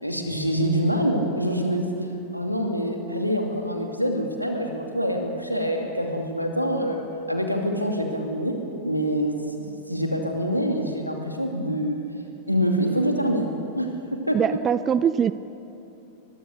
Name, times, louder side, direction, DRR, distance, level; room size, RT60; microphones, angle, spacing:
voice 1, 0.0-1.9 2.3-8.6 8.8-9.6 9.9-12.0 12.5-13.5 13.7-14.4, equal, 90° right, 3 dB, 2.6 m, -25 dB
voice 2, 14.3-15.3, right 8 dB, 25° right, 16 dB, 0.5 m, -22 dB
23.5 x 21.5 x 6.7 m, 2.9 s
figure-of-eight pair, 90°, 0 cm